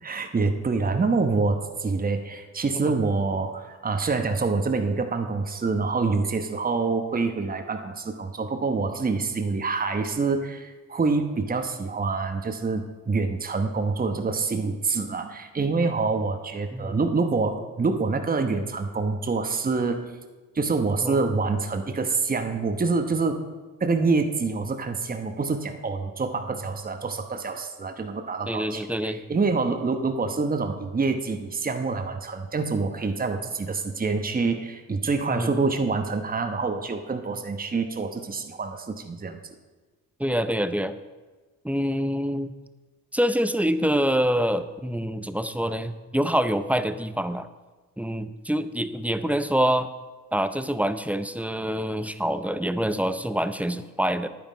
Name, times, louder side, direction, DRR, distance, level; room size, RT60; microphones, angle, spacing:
voice 1, 0.0-20.1 20.5-23.4 23.8-39.5, right 4 dB, 25° right, 6 dB, 1.0 m, -26 dB
voice 2, 28.5-29.2 35.3-35.6 40.2-40.9 41.6-42.5 43.1-47.5 48.0-49.9 50.3-54.3, equal, 5° right, 11 dB, 0.6 m, -26 dB
10.5 x 9.3 x 5.1 m, 1.3 s
cardioid pair, 80°, 33 cm